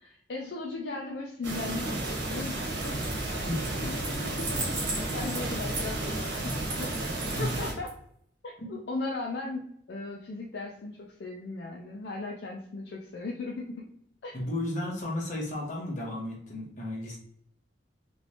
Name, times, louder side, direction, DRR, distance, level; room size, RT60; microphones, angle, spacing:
voice 1, 0.0-3.0 3.3-3.4 3.8-7.1 7.4-7.9 8.4-13.9 14.2-14.4, left 3 dB, 60° left, -1 dB, 0.4 m, -38 dB
sound 1, 1.4-7.7, right 2 dB, 85° right, 1.3 m, -32 dB
sound 2, 2.8-3.3 3.6-7.9, right 2 dB, 55° right, 1.4 m, -38 dB
voice 2, 14.3-17.2, left 1 dB, 40° left, -2 dB, 1.0 m, -33 dB
3.1 x 3.1 x 2.7 m, 0.70 s
head